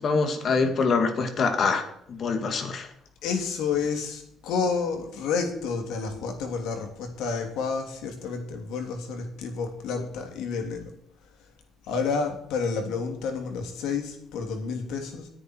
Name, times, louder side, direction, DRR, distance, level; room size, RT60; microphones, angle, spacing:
voice 1, 0.0-2.9, left 4 dB, 45° left, 6 dB, 2.3 m, -25 dB
voice 2, 3.2-10.9 11.9-15.3, left 5 dB, 90° left, 4 dB, 3.1 m, -30 dB
19.0 x 9.9 x 4.7 m, 0.73 s
cardioid pair, 125°, 0 cm